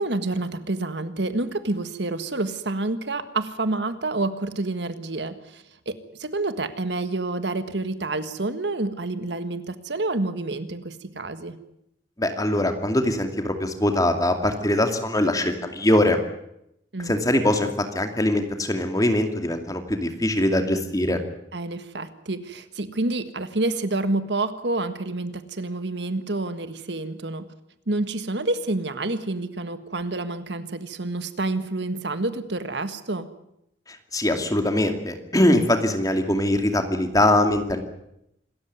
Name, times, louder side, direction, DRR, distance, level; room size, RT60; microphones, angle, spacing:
voice 1, 0.0-11.6 16.9-17.1 21.5-27.4 27.9-33.3, right 2 dB, 70° right, 11 dB, 1.6 m, -28 dB
voice 2, 12.2-16.2 17.0-17.7 17.9-21.2 34.1-37.8, left 1 dB, 20° left, 6 dB, 2.5 m, -22 dB
26.5 x 14.0 x 9.6 m, 0.79 s
head